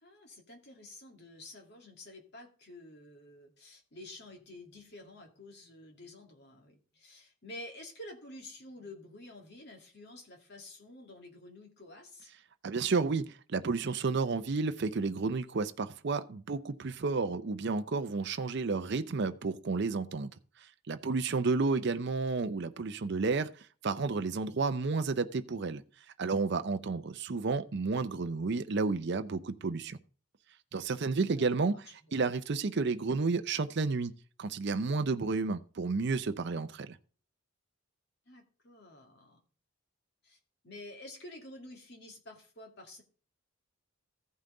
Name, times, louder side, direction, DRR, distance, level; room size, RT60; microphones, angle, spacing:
voice 1, 0.0-12.3 21.7-21.8 31.4-32.1 38.3-39.4 40.2-40.4 40.6-43.0, left 1 dB, 50° left, 2.2 m, -50 dB
voice 2, 12.6-20.3 20.9-23.5 23.8-25.8 26.2-30.0 30.7-31.7 32.1-34.1 34.4-37.0, right 4 dB, 50° right, 0.5 m, -31 dB
14.5 x 5.6 x 3.8 m
head